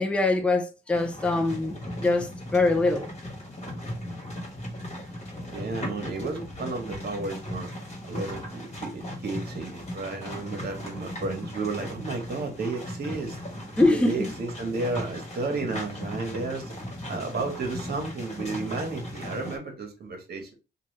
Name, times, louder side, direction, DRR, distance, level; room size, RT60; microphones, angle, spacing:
voice 1, 0.0-3.1 13.8-14.2, left 2 dB, 5° left, 0.5 m, -23 dB
sound 1, 0.9-19.6, left 1 dB, 35° left, 1.3 m, -37 dB
voice 2, 5.5-7.7 8.1-13.4 13.9-16.8 17.1-20.6, right 3 dB, 50° right, 1.2 m, -32 dB
3.0 x 2.4 x 3.1 m
cardioid pair, 90°, 20 cm